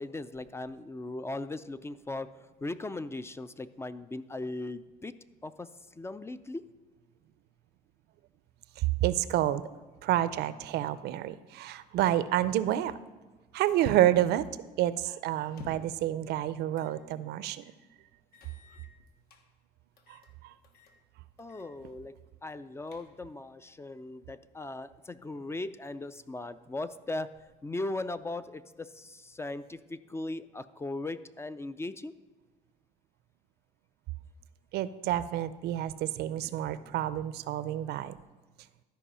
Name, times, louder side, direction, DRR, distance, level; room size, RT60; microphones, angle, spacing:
voice 1, 0.0-5.1 5.4-5.7 6.0-6.7 21.4-27.3 27.6-32.1, left 2 dB, 15° left, 14 dB, 0.3 m, -38 dB
voice 2, 9.0-9.6 10.0-12.9 13.5-14.4 14.8-17.6 34.7-38.1, right 13 dB, 75° right, 15 dB, 0.5 m, -28 dB
sound 1, 15.4-16.0 16.7-17.0 17.4-17.5 18.3-19.4 20.0-20.3 20.6-21.0 21.4-21.7 22.0-22.1 22.6-23.4, left 3 dB, 65° left, 1.2 m, -52 dB
12.5 x 4.7 x 5.6 m, 1.3 s
cardioid pair, 110°, 17 cm